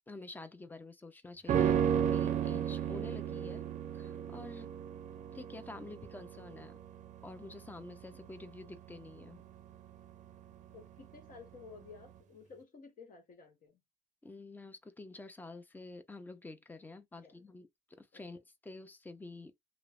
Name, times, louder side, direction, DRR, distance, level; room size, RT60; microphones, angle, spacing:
voice 1, 0.0-3.6 3.9-4.7 5.3-6.8 7.2-9.4 14.2-19.5, left 2 dB, 10° left, 0.5 m, -49 dB
sound 1, 1.5-10.9 11.2-11.3, right 9 dB, 45° right, 0.5 m, -34 dB
voice 2, 8.1-8.5 10.7-13.8 17.1-17.4 18.1-18.2, left 5 dB, 50° left, 1.2 m, -54 dB
3.0 x 2.0 x 2.4 m
cardioid pair, 110°, 17 cm